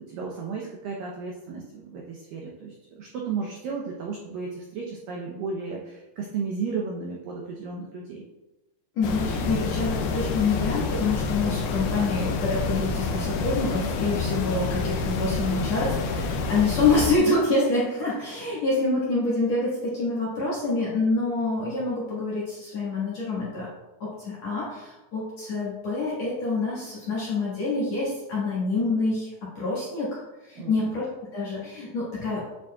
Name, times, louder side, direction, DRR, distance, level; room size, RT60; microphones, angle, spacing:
voice 1, 0.0-8.2 30.6-30.9, right 5 dB, 85° right, -2 dB, 2.0 m, -34 dB
sound 1, 9.0-17.2, left 4 dB, 80° left, 2.1 m, -28 dB
voice 2, 9.0-23.7 24.0-29.3 29.6-32.4, left 3 dB, 55° left, -8 dB, 2.1 m, -26 dB
9.1 x 7.0 x 2.4 m, 1.0 s
omnidirectional pair, 5.2 m